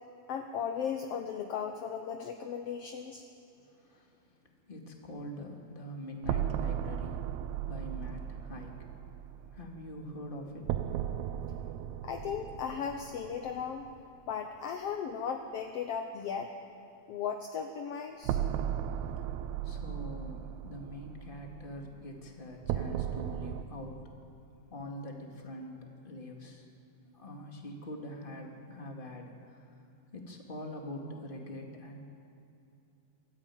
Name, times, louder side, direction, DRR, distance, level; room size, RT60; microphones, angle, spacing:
voice 1, 0.3-3.2 12.0-13.9 14.3-16.5 17.1-18.4, left 7 dB, 65° left, 5 dB, 1.7 m, -36 dB
voice 2, 3.8-4.1 4.7-7.2 7.6-8.7 9.5-10.8 19.6-20.4 20.6-24.0 24.7-25.8 26.0-26.7 27.1-29.6 30.1-32.0, left 1 dB, 20° left, 1 dB, 2.2 m, -44 dB
sound 1, 6.2-14.0 14.3-14.4 18.2-23.6, right 10 dB, 80° right, 2.0 m, -36 dB
21.5 x 13.5 x 9.3 m, 2.8 s
omnidirectional pair, 3.3 m